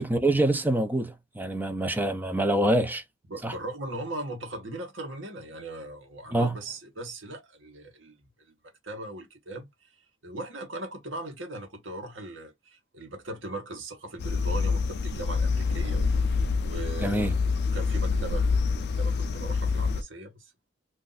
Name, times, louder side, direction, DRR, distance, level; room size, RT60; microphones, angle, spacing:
voice 1, 0.0-3.0 3.4-3.5 6.3-6.5 17.0-17.3, right 1 dB, 10° right, 0.5 m, -25 dB
voice 2, 3.3-8.2 8.8-9.7 10.2-16.1 16.6-17.3 17.7-18.7 19.0-20.5, right 1 dB, 80° right, 1.1 m, -39 dB
sound 1, 14.2-20.0, left 4 dB, 60° left, 0.4 m, -26 dB
2.5 x 2.5 x 3.8 m
head